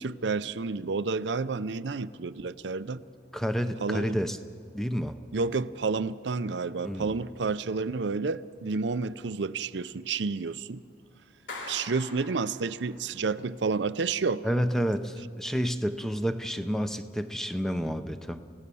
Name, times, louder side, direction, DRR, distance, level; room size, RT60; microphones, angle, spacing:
voice 1, 0.0-3.0 3.8-4.2 5.3-10.8 11.7-14.5, right 4 dB, 75° right, 0.6 m, -30 dB
voice 2, 3.3-4.4 4.7-5.2 6.8-7.1 14.4-18.4, equal, ahead, 0.7 m, -29 dB
Clapping, 11.5-13.1, left 2 dB, 85° left, 3.3 m, -42 dB
30.0 x 17.0 x 7.0 m
head